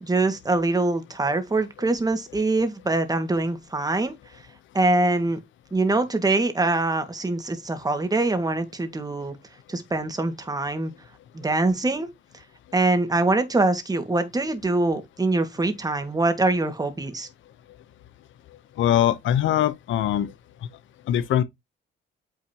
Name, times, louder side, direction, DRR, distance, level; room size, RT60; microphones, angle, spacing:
voice 1, 0.0-4.1 4.7-5.4 5.7-9.4 9.7-10.9 11.3-12.1 12.7-17.3, right 2 dB, 20° right, 2.0 m, -24 dB
voice 2, 18.8-20.3 21.1-21.4, left 11 dB, 75° left, 0.9 m, -22 dB
9.1 x 4.6 x 2.9 m
cardioid pair, 90°, 20 cm